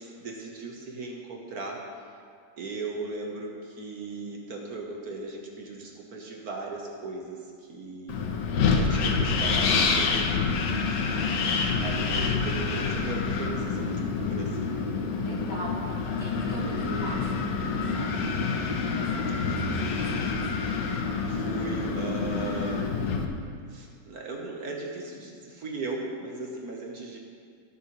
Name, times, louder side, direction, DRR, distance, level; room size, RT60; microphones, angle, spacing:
voice 1, 0.0-2.1 2.6-8.5 8.7-10.4 11.8-14.8 16.4-16.6 21.2-23.2 23.7-27.2, right 3 dB, 60° right, 0 dB, 1.5 m, -37 dB
Wind, 8.1-23.2, left 4 dB, 90° left, 1.5 m, -27 dB
voice 2, 10.6-11.3 15.2-18.2 18.8-20.5, left 1 dB, 35° left, -6 dB, 2.6 m, -39 dB
17.5 x 7.5 x 3.1 m, 2.2 s
omnidirectional pair, 1.8 m